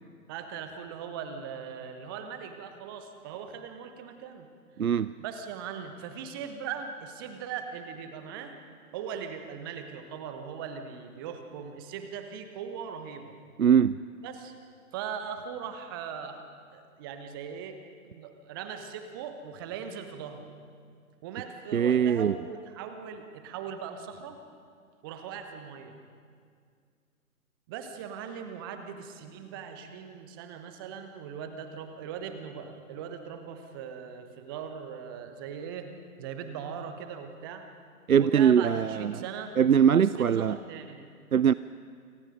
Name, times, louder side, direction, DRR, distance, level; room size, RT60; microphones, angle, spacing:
voice 1, 0.3-4.5 5.2-8.6 8.9-13.3 14.2-14.5 14.9-16.5 16.7-17.8 18.1-20.5 21.2-24.4 25.0-26.0 27.7-35.9 36.2-37.7 38.2-39.6 40.0-41.1, right 7 dB, 15° right, 7 dB, 1.1 m, -40 dB
voice 2, 4.8-5.1 13.6-14.0 21.7-22.3 38.1-39.2 39.6-40.6 41.3-41.5, right 8 dB, 70° right, 17 dB, 0.6 m, -22 dB
28.0 x 24.5 x 5.2 m, 2.2 s
figure-of-eight pair, 135°, 44 cm